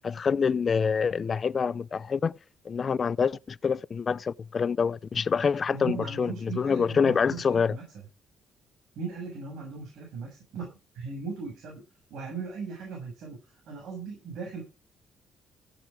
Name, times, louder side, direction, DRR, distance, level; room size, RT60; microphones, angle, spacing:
voice 1, 0.0-2.3 2.6-7.8, left 6 dB, 45° left, 0.6 m, -26 dB
voice 2, 5.7-7.8 9.0-11.8 12.1-14.6, right 5 dB, 80° right, 7.2 m, -38 dB
16.5 x 7.9 x 5.0 m
cardioid pair, 90°, 0 cm